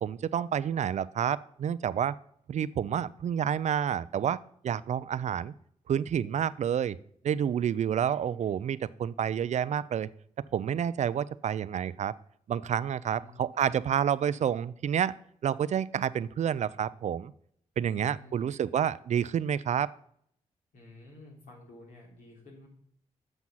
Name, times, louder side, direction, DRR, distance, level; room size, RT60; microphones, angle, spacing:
voice 1, 0.0-2.2 2.5-5.5 5.9-7.0 7.2-10.1 10.5-12.2 12.5-15.2 15.4-17.3 17.8-19.9, right 9 dB, 60° right, 18 dB, 0.4 m, -29 dB
voice 2, 13.1-13.9 18.0-18.6 20.7-22.7, left 2 dB, 85° left, -2 dB, 3.5 m, -52 dB
7.9 x 6.0 x 5.6 m, 0.66 s
cardioid pair, 65°, 14 cm